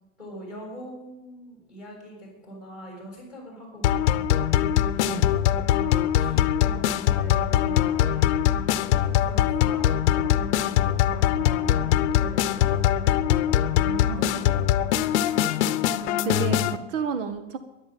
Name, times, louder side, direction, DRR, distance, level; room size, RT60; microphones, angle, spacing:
voice 1, 0.2-5.1 5.5-8.6 9.0-14.8 16.5-16.9, equal, ahead, -2 dB, 6.5 m, -43 dB
sound 1, 3.8-16.8, left 11 dB, 60° left, 0.8 m, -22 dB
voice 2, 13.8-14.7 16.2-17.6, right 6 dB, 70° right, 10 dB, 1.4 m, -31 dB
12.5 x 11.0 x 9.1 m, 0.99 s
supercardioid pair, 180°, 39 cm